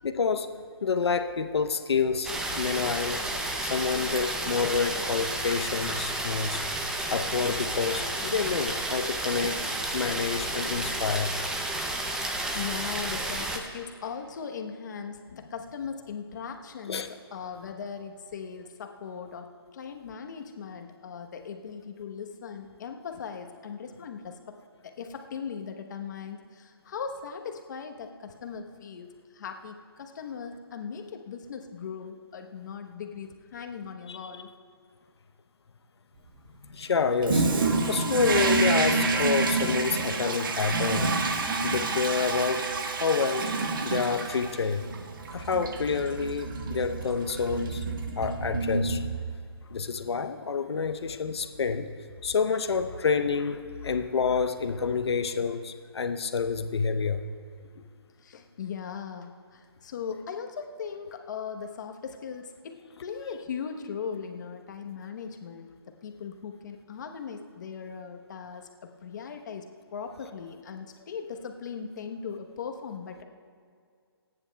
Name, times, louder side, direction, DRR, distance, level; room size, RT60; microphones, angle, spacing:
voice 1, 0.0-0.5 0.8-6.6 7.0-9.6 9.9-11.3 16.9-17.1 34.1-34.2 36.6-41.2 41.6-43.5 43.8-44.8 45.3-47.8 48.2-49.0 49.7-51.9 52.2-57.3, left 5 dB, 75° left, 8 dB, 0.8 m, -28 dB
sound 1, 2.2-13.6, right 1 dB, 5° right, 0.5 m, -31 dB
voice 2, 12.2-34.5 57.7-57.8 58.2-65.7 66.0-73.2, left 6 dB, 45° left, 4 dB, 1.0 m, -39 dB
Toilet flush, 37.2-49.5, right 3 dB, 55° right, 1.3 m, -28 dB
29.0 x 9.8 x 2.3 m, 2.2 s
hypercardioid pair, 155°, 14 cm